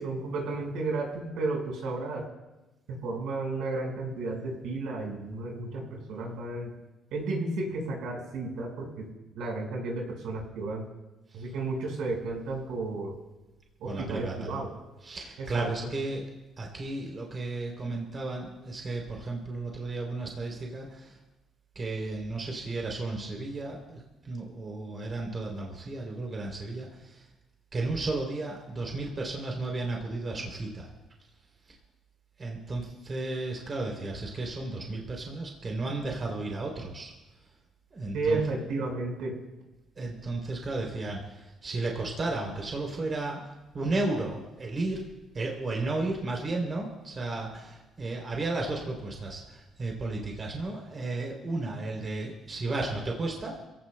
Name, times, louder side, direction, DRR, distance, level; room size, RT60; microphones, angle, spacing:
voice 1, 0.0-2.3 2.9-6.7 7.1-9.1 9.3-10.9 11.3-13.1 13.8-14.7 15.5-15.7 38.1-39.4, right 3 dB, 80° right, 0 dB, 4.8 m, -32 dB
voice 2, 13.8-14.6 15.0-16.3 16.6-21.2 21.7-27.2 27.7-30.9 32.4-37.1 37.9-38.4 40.0-43.4 43.7-45.0 45.3-53.6, right 2 dB, 30° right, 0 dB, 3.1 m, -33 dB
28.0 x 17.0 x 2.2 m, 1.1 s
cardioid pair, 150°, 0 cm